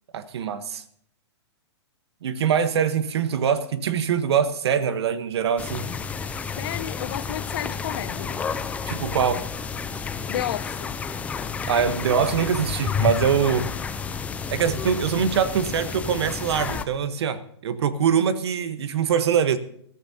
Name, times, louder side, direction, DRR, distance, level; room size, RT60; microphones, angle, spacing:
voice 1, 0.1-0.8 2.2-5.8 8.9-9.4 11.7-13.7 14.5-19.6, right 7 dB, 70° right, 1.1 m, -23 dB
sound 1, 5.6-16.8, left 5 dB, 10° left, 0.5 m, -30 dB
voice 2, 6.6-8.4 10.3-11.0, left 12 dB, 55° left, 0.6 m, -32 dB
22.0 x 13.5 x 2.8 m
hypercardioid pair, 140°, 14 cm